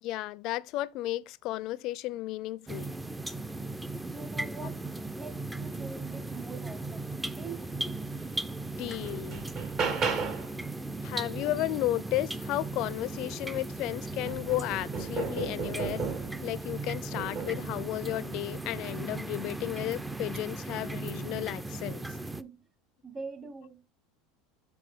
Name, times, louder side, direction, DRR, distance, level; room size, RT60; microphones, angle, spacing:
voice 1, 0.0-3.0 4.6-4.7 8.8-9.5 11.0-16.1 16.4-22.0, left 16 dB, 55° left, 0.4 m, -33 dB
sound 1, 2.7-22.4, right 2 dB, 10° right, 0.5 m, -37 dB
voice 2, 4.0-4.9 5.1-7.7 22.4-22.7 23.0-23.9, right 4 dB, 25° right, 1.3 m, -44 dB
sound 2, 8.2-8.3 8.8-10.6 13.0-13.1 13.5-16.5 17.2-17.7 18.7-19.0, right 5 dB, 50° right, 2.0 m, -34 dB
6.9 x 5.9 x 3.7 m
hypercardioid pair, 100°, 0 cm